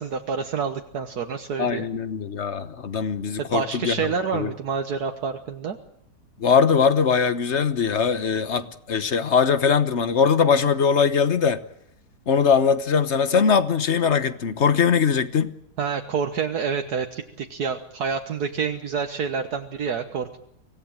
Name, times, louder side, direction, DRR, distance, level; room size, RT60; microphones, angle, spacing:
voice 1, 0.0-1.8 3.4-5.8 15.8-20.4, right 6 dB, 70° right, 6 dB, 1.8 m, -28 dB
voice 2, 1.6-4.5 6.4-11.6 12.3-15.5, left 6 dB, 45° left, 13 dB, 1.4 m, -21 dB
25.0 x 18.0 x 8.9 m, 0.75 s
omnidirectional pair, 1.7 m